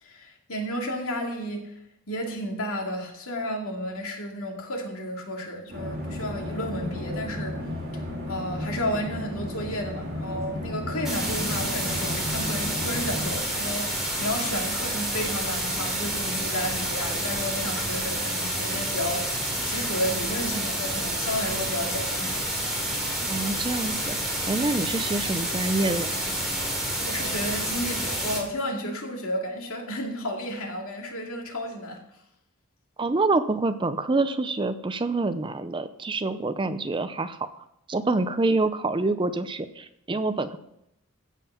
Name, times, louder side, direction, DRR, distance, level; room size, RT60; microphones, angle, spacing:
voice 1, 0.0-1.7 2.1-7.6 7.9-22.4 27.0-32.0, equal, 70° left, 1 dB, 2.5 m, -32 dB
sound 1, 5.7-13.3, left 1 dB, 45° right, 3.2 m, -33 dB
sound 2, 11.0-28.4, right 1 dB, ahead, 3.2 m, -29 dB
voice 2, 23.2-24.2 24.5-26.1 28.9-29.0 33.0-40.6, right 2 dB, 20° right, 11 dB, 0.5 m, -26 dB
15.5 x 5.6 x 5.7 m, 0.80 s
head